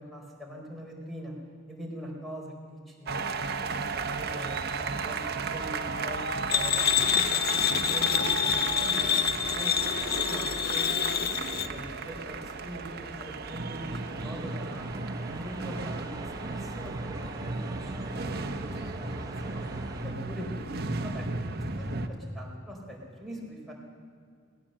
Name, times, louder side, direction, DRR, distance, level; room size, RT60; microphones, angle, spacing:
voice 1, 0.0-1.3 1.7-6.7 7.1-9.2 9.5-10.9 11.5-14.8 15.2-18.6 18.9-19.7 20.0-21.3 21.8-23.7, equal, ahead, -1 dB, 4.2 m, -43 dB
sound 1, 3.1-22.1, right 3 dB, 50° right, 1.1 m, -34 dB
sound 2, 6.5-11.7, left 8 dB, 50° left, 0.6 m, -27 dB
sound 3, 12.5-20.1, right 2 dB, 20° right, 0.8 m, -45 dB
19.0 x 17.5 x 7.8 m, 2.2 s
head